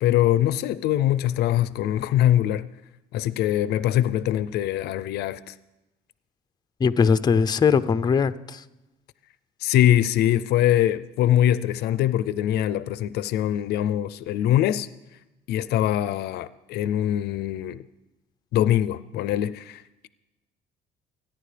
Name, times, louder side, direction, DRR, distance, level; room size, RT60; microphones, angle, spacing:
voice 1, 0.0-2.7 3.1-5.5 9.6-14.9 15.5-17.8 18.5-20.1, left 12 dB, 75° left, 0.4 m, -23 dB
voice 2, 6.8-8.6, left 6 dB, 25° left, 0.5 m, -20 dB
26.5 x 10.0 x 3.3 m
cardioid pair, 110°, 17 cm